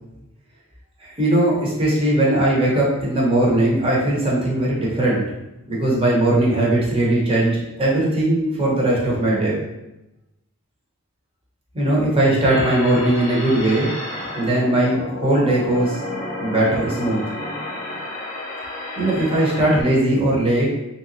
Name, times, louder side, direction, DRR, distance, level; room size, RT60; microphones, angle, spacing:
voice 1, 1.0-5.3 5.7-9.6 11.7-13.9 14.4-16.0 16.4-17.2 19.0-20.7, right 1 dB, 25° right, -5 dB, 0.8 m, -19 dB
sound 1, 12.5-19.8, left 1 dB, 35° left, 0.7 m, -31 dB
3.4 x 2.9 x 2.6 m, 0.95 s
head